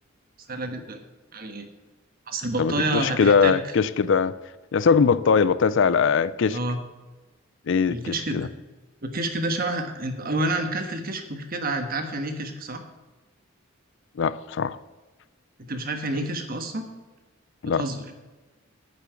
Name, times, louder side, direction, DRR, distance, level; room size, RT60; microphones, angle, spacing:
voice 1, 0.5-1.0 1.3-1.7 2.3-3.6 6.5-6.8 7.9-8.5 9.0-12.8 15.7-16.9 17.7-18.0, right 2 dB, 45° right, 1.3 m, -29 dB
voice 2, 2.6-4.3 4.7-6.6 7.7-8.5 14.2-14.8 17.6-17.8, left 5 dB, 65° left, 0.4 m, -21 dB
9.7 x 6.9 x 6.9 m
head